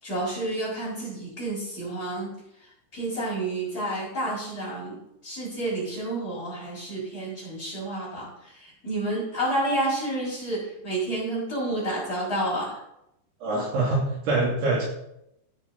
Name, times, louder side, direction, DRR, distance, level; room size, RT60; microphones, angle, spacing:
voice 1, 0.0-2.3 2.6-5.0 5.2-12.8, right 1 dB, 20° left, -8 dB, 6.1 m, -30 dB
voice 2, 13.4-14.8, right 2 dB, 60° right, -4 dB, 4.6 m, -24 dB
15.5 x 9.6 x 4.2 m, 0.81 s
omnidirectional pair, 5.7 m